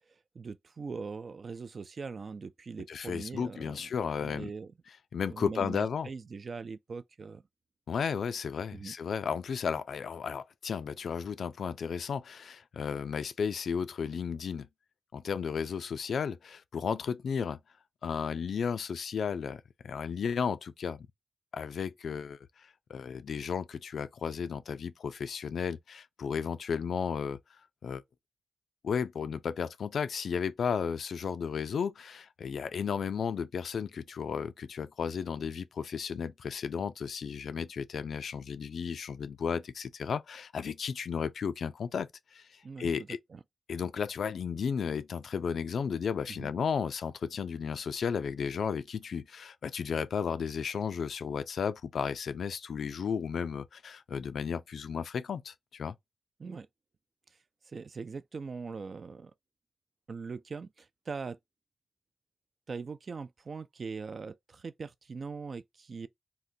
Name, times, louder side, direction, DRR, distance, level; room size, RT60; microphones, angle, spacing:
voice 1, 0.1-3.9 4.2-4.7 5.3-7.4 8.7-8.9 42.6-43.4 46.3-46.5 56.4-56.7 57.6-59.3 60.1-61.4 62.7-66.1, right 4 dB, 55° right, 0.3 m, -41 dB
voice 2, 2.9-4.5 5.1-6.1 7.9-14.7 15.1-17.6 18.0-21.1 21.5-27.4 27.8-28.0 28.8-43.2 43.7-55.9, left 6 dB, 85° left, 0.3 m, -34 dB
3.7 x 2.2 x 2.6 m
wide cardioid pair, 105°, 0 cm